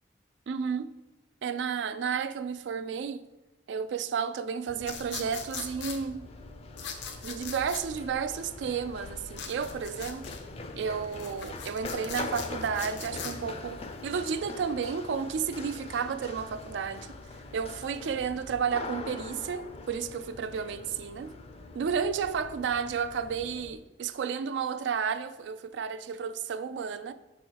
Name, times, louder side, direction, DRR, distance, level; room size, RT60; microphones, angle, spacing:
voice 1, 0.5-0.9 1.4-3.3 3.7-6.3 7.2-10.3 10.8-17.2 17.5-21.3 21.7-27.1, right 6 dB, 90° right, 0.3 m, -32 dB
Run, 4.7-23.7, left 3 dB, 35° left, 0.4 m, -43 dB
sound 1, 4.8-6.0 6.8-7.8 9.3-10.4 11.0-13.3, left 7 dB, 85° left, 0.7 m, -40 dB
5.6 x 4.2 x 4.5 m
head